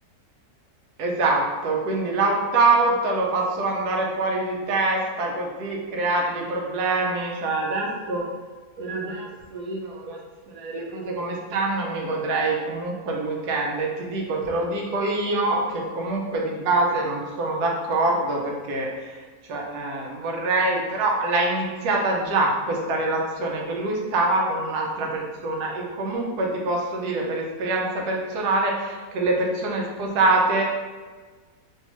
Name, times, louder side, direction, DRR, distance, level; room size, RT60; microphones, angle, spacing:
voice 1, 1.0-8.2 8.8-10.2 10.5-19.2 19.5-30.6, right 2 dB, 80° right, -1 dB, 1.2 m, -25 dB
3.2 x 2.7 x 2.9 m, 1.4 s
omnidirectional pair, 1.6 m